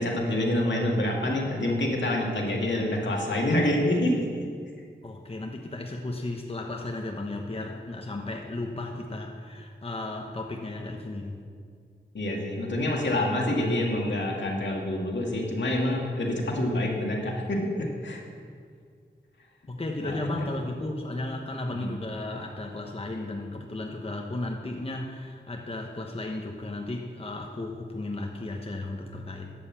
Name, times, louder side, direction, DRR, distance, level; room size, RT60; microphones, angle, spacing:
voice 1, 0.0-4.2 12.1-18.2 20.0-20.2 21.7-22.0, left 1 dB, 65° left, -1 dB, 1.9 m, -27 dB
voice 2, 5.0-11.4 19.7-29.5, left 2 dB, 30° left, 1 dB, 1.0 m, -34 dB
11.5 x 5.4 x 7.5 m, 2.1 s
wide cardioid pair, 55°, 20 cm